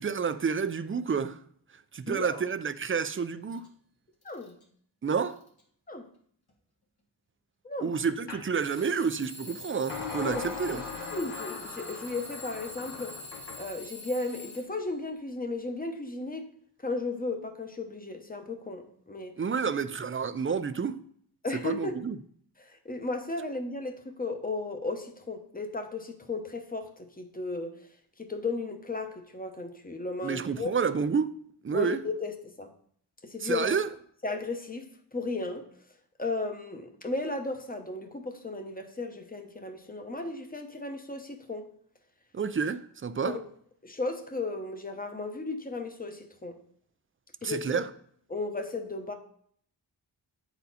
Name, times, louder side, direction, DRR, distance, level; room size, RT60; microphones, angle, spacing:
voice 1, 0.0-1.4 1.9-3.7 5.0-5.4 7.8-10.8 19.4-21.0 21.5-22.2 30.2-31.3 31.6-32.0 33.4-33.9 42.3-43.4 47.4-47.9, right 6 dB, 30° right, 0.4 m, -29 dB
voice 2, 2.1-2.4 4.2-4.6 5.9-6.1 7.6-7.9 10.2-13.2 13.6-16.5 16.8-19.4 21.4-21.9 22.6-27.8 28.2-30.7 31.7-32.3 32.6-32.7 33.2-33.8 34.2-35.7 36.2-41.7 43.2-43.4 43.8-46.6 47.4-47.8 48.3-49.1, left 3 dB, 20° left, 0.9 m, -35 dB
Alarm / Clock, 3.5-3.7 4.2-4.6 5.2-5.6 6.5-6.6 8.6-15.0, left 2 dB, 60° left, 1.7 m, -46 dB
sound 1, 8.3-8.5 9.9-13.7, left 5 dB, 80° left, 1.4 m, -39 dB
9.3 x 4.2 x 4.1 m
wide cardioid pair, 85°, 42 cm